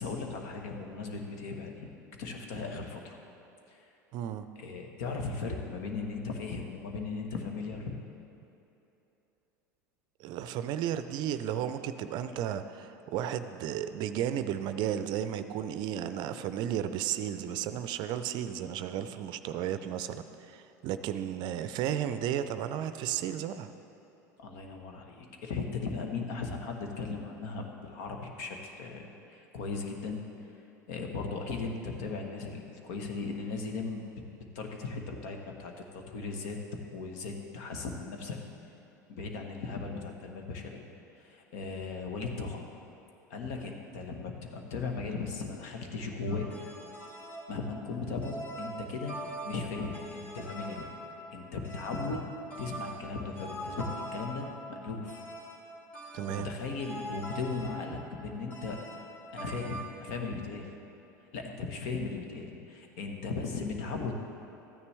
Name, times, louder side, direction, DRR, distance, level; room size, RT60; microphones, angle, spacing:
voice 1, 0.0-1.9 2.2-3.2 3.7-3.9 4.6-7.9 24.4-30.2 30.9-34.0 34.3-36.6 36.9-38.4 39.1-40.9 41.2-42.7 43.3-46.5 47.5-49.2 49.4-50.9 51.3-52.2 52.6-55.2 56.3-58.8 59.3-60.7 61.3-64.1, left 4 dB, 60° left, 3 dB, 1.3 m, -37 dB
voice 2, 4.1-4.5 10.2-23.7 56.1-56.5, right 10 dB, 50° right, 11 dB, 0.5 m, -33 dB
sound 1, 46.3-59.9, right 1 dB, 15° left, 2.0 m, -43 dB
14.0 x 9.7 x 3.4 m, 3.0 s
hypercardioid pair, 80°, 10 cm